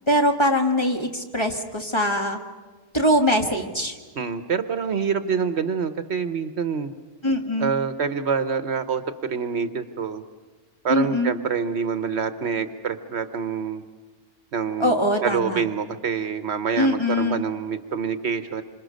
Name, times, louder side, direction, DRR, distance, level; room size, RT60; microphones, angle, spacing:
voice 1, 0.1-2.4 2.9-4.0 7.2-7.7 10.9-11.3 14.8-15.6 16.8-17.4, equal, 20° left, 3 dB, 1.7 m, -22 dB
voice 2, 4.2-6.9 7.6-10.2 10.8-13.8 14.5-18.6, right 6 dB, 60° right, 11 dB, 1.2 m, -26 dB
27.5 x 25.5 x 6.4 m, 1.4 s
omnidirectional pair, 1.3 m